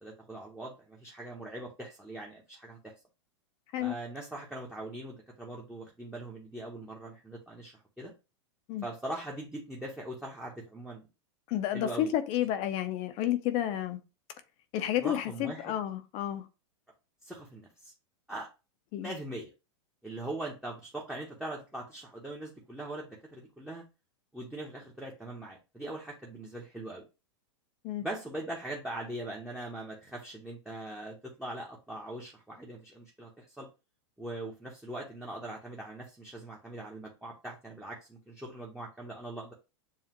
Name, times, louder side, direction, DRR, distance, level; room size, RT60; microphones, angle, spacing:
voice 1, 0.0-2.9 3.8-8.1 8.8-11.1 11.7-12.1 15.0-15.7 17.2-17.9 18.3-18.5 19.0-19.5 20.0-23.8 24.3-27.0 28.0-33.7 34.2-39.5, right 1 dB, 5° right, 0.9 m, -41 dB
voice 2, 11.5-14.0 14.7-16.5 18.9-19.1 27.8-28.0, left 12 dB, 40° left, 0.6 m, -31 dB
7.2 x 2.4 x 2.9 m
hypercardioid pair, 130°, 15 cm